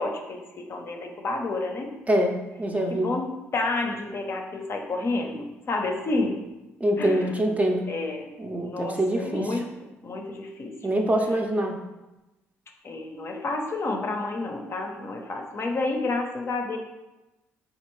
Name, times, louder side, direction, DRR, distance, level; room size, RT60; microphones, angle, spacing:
voice 1, 0.0-1.9 2.9-6.4 7.0-7.3 7.9-8.3 8.6-9.6 10.0-10.8 12.8-16.8, left 2 dB, 45° left, 2 dB, 0.5 m, -30 dB
voice 2, 2.1-3.1 6.8-7.8 8.4-9.5 10.8-11.8, right 1 dB, 25° right, 2 dB, 0.5 m, -24 dB
3.4 x 2.4 x 3.0 m, 1.0 s
hypercardioid pair, 55°, 6 cm